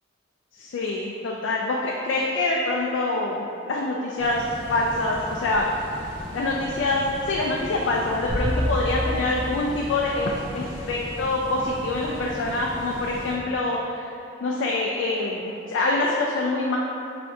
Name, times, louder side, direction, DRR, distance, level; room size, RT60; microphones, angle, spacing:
voice 1, 0.5-5.7 6.3-14.0 14.4-16.8, left 2 dB, 75° left, -2 dB, 0.3 m, -25 dB
sound 1, 4.2-13.3, equal, 65° right, 1.2 m, -38 dB
sound 2, 8.3-10.8, equal, 20° right, 1.1 m, -29 dB
4.8 x 3.3 x 2.6 m, 2.8 s
head